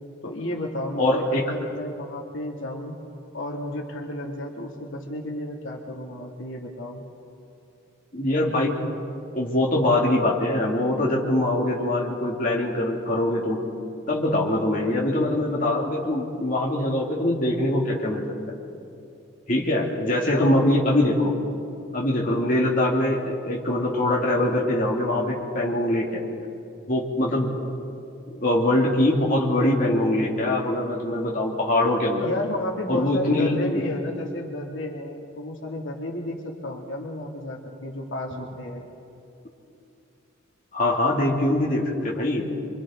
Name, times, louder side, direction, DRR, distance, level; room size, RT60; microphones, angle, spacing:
voice 1, 0.2-3.0 3.3-7.0 20.3-20.6 32.2-38.8, left 1 dB, 65° left, -1 dB, 2.4 m, -32 dB
voice 2, 1.0-1.4 8.1-8.8 9.3-13.6 14.1-18.3 19.5-21.3 21.9-26.2 26.9-27.5 28.3-32.3 32.9-33.8 38.3-38.4 40.7-42.5, left 1 dB, 40° left, -3 dB, 2.3 m, -23 dB
28.0 x 25.0 x 3.8 m, 2.7 s
head